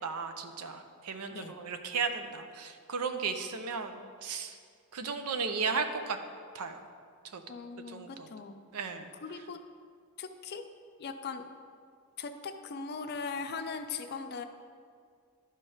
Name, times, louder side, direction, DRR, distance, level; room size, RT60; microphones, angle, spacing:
voice 1, 0.0-4.6 4.9-6.2 6.5-6.8 7.3-7.4 7.9-8.3 8.7-9.1, right 5 dB, 85° right, 8 dB, 0.6 m, -35 dB
voice 2, 7.5-8.6 9.2-9.6 10.2-10.7 11.0-11.5 12.2-14.4, left 5 dB, 45° left, 8 dB, 0.5 m, -39 dB
11.0 x 4.4 x 4.9 m, 2.1 s
head